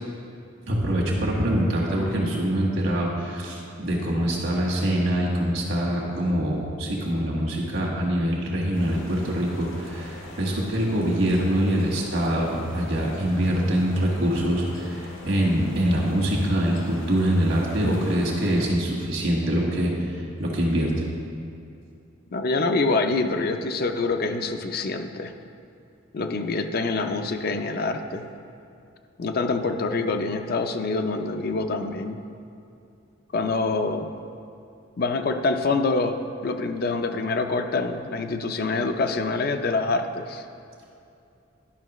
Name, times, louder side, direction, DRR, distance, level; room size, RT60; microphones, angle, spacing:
voice 1, 0.7-21.1, equal, 75° right, -2 dB, 1.6 m, -24 dB
sound 1, 8.7-18.7, left 1 dB, 80° left, 1.3 m, -42 dB
voice 2, 22.3-25.3 26.1-28.2 29.2-32.2 33.3-34.1 35.0-36.2 36.4-40.4, left 3 dB, 50° left, 7 dB, 0.4 m, -25 dB
11.0 x 5.7 x 3.0 m, 2.6 s
head